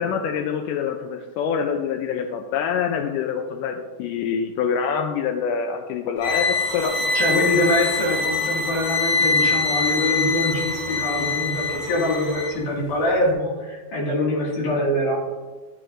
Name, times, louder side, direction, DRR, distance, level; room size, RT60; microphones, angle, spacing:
voice 1, 0.0-7.0, left 7 dB, 85° left, 5 dB, 1.9 m, -25 dB
sound 1, 6.2-12.5, left 3 dB, 40° left, 3.3 m, -24 dB
voice 2, 7.1-15.2, left 1 dB, 60° left, -3 dB, 3.4 m, -24 dB
11.5 x 9.0 x 2.5 m, 1.3 s
omnidirectional pair, 4.3 m